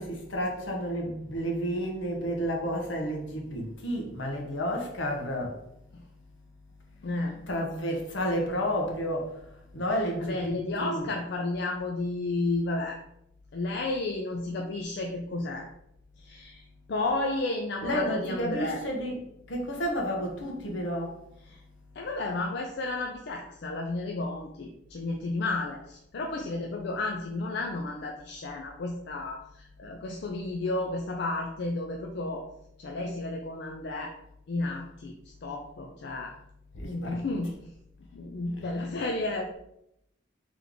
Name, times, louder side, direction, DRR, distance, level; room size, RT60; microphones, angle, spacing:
voice 1, 0.0-5.6 7.5-9.3 9.7-11.1 17.8-19.1 19.5-21.1 36.7-37.2, equal, 75° left, 1 dB, 1.0 m, -31 dB
voice 2, 7.0-7.4 10.0-13.0 13.5-15.7 16.2-18.8 21.4-21.6 21.9-32.5 32.8-34.1 34.5-35.1 35.4-36.3 36.8-37.5 38.1-39.5, left 2 dB, 60° left, 2 dB, 0.4 m, -32 dB
3.4 x 3.1 x 3.8 m, 0.80 s
head